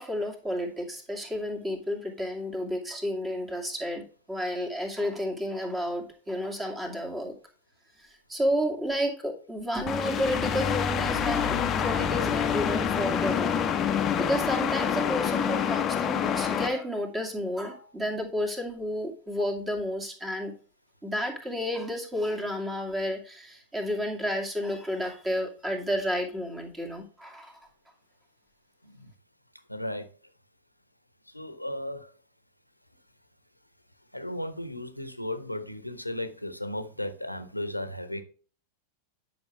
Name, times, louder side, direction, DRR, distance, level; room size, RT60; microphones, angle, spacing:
voice 1, 0.0-7.3 8.0-13.6 13.9-20.5 21.0-27.6, equal, 10° right, 2.4 m, -31 dB
sound 1, 9.9-16.7, left 8 dB, 25° left, 0.9 m, -27 dB
voice 2, 29.7-30.1 31.3-32.1 34.1-38.2, left 1 dB, 90° left, 1.1 m, -35 dB
10.5 x 6.1 x 3.4 m
figure-of-eight pair, 90°, 0 cm